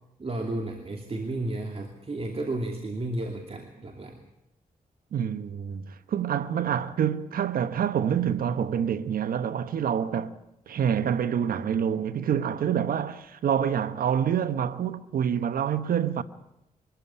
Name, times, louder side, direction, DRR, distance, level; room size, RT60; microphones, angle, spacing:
voice 1, 0.2-4.2, right 2 dB, 40° right, 2.7 m, -32 dB
voice 2, 5.1-10.3 10.7-16.2, right 8 dB, 80° right, 1.0 m, -27 dB
22.5 x 14.0 x 9.9 m
cardioid pair, 70°, 15 cm